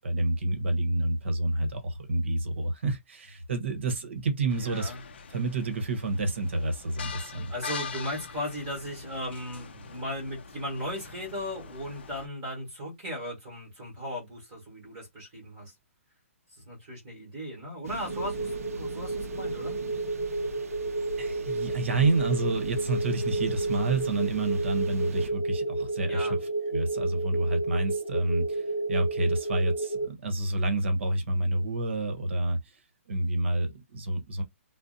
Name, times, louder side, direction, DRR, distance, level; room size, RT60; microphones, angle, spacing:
voice 1, 0.0-4.9 5.3-7.5 21.2-26.3 26.7-32.6 33.1-34.4, right 2 dB, 55° right, 0.9 m, -29 dB
sound 1, 4.5-12.3, left 6 dB, 45° left, 0.4 m, -43 dB
voice 2, 4.6-5.0 7.5-15.7 16.5-19.8 26.1-26.4, equal, 15° right, 1.2 m, -37 dB
sound 2, 17.8-25.3, right 3 dB, 85° right, 0.5 m, -42 dB
sound 3, 18.1-30.1, right 2 dB, 15° left, 0.9 m, -31 dB
2.6 x 2.0 x 3.8 m
hypercardioid pair, 180°, 8 cm